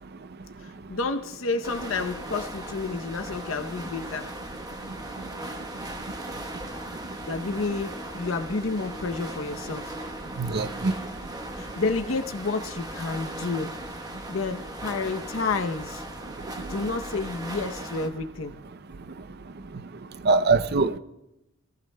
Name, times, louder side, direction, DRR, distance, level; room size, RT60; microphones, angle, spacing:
voice 1, 0.6-4.4 7.3-10.0 11.6-13.8 14.3-16.0 16.7-18.6 20.3-20.4, left 3 dB, 80° left, 0.7 m, -30 dB
sound 1, 1.6-18.1, right 1 dB, 20° right, 1.0 m, -38 dB
voice 2, 10.4-10.9 20.2-21.0, right 4 dB, 50° right, 0.5 m, -22 dB
25.0 x 15.5 x 2.2 m
head